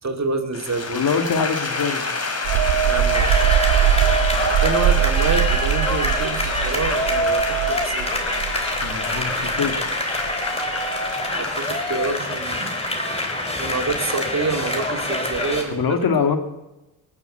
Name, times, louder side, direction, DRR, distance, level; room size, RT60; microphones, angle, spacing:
voice 1, 0.0-1.1 2.9-3.5 4.6-8.1 11.3-12.8 13.6-16.4, right 3 dB, 35° right, 5 dB, 2.3 m, -27 dB
sound 1, 0.5-15.7, left 3 dB, 30° left, 4.0 m, -29 dB
voice 2, 0.9-2.1 8.8-9.8 15.7-16.4, left 6 dB, 50° left, 6 dB, 2.1 m, -23 dB
sound 2, 2.4-9.9 10.2-10.4, right 9 dB, 75° right, 1.6 m, -22 dB
sound 3, 3.1-15.6, left 1 dB, 15° left, 3.8 m, -26 dB
20.0 x 7.1 x 7.5 m, 0.96 s
hypercardioid pair, 55°, 45 cm